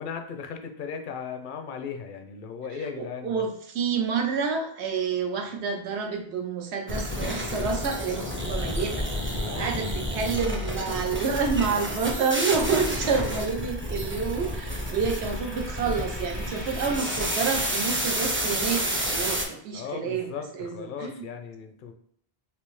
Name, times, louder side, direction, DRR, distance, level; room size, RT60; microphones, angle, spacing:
voice 1, 0.0-3.4 9.4-9.8 19.7-21.9, left 6 dB, 60° left, 6 dB, 0.6 m, -37 dB
voice 2, 3.0-20.3 20.5-21.2, right 5 dB, 80° right, 3 dB, 0.9 m, -29 dB
sound 1, 6.9-19.5, equal, 20° right, 0.3 m, -30 dB
sound 2, 12.1-18.2, left 1 dB, 80° left, 1.0 m, -43 dB
3.4 x 2.6 x 3.1 m, 0.64 s
omnidirectional pair, 1.1 m